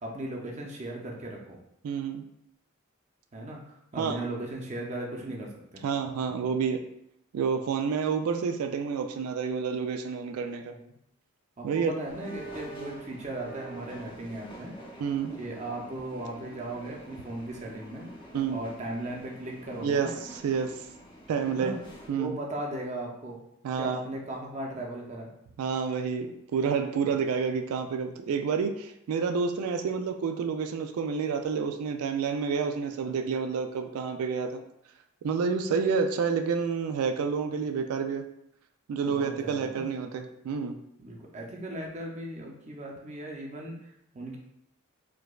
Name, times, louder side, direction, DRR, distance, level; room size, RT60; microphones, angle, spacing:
voice 1, 0.0-1.6 3.3-5.8 10.7-10.9 11.6-14.8 15.4-18.1 18.5-20.1 21.5-21.8 22.1-23.4 23.8-25.3 39.0-39.9 41.0-44.4, right 1 dB, 30° right, -1 dB, 0.5 m, -37 dB
voice 2, 1.8-2.2 4.0-4.2 5.8-6.8 7.3-10.7 11.6-11.9 15.0-15.3 18.3-18.6 19.8-20.8 21.3-21.8 22.1-22.4 23.6-24.0 25.6-34.6 35.2-38.2 38.9-40.8, right 6 dB, 90° right, 7 dB, 0.3 m, -29 dB
sound 1, 12.0-22.1, right 1 dB, 20° left, 0.5 m, -46 dB
4.7 x 2.2 x 2.3 m, 0.78 s
head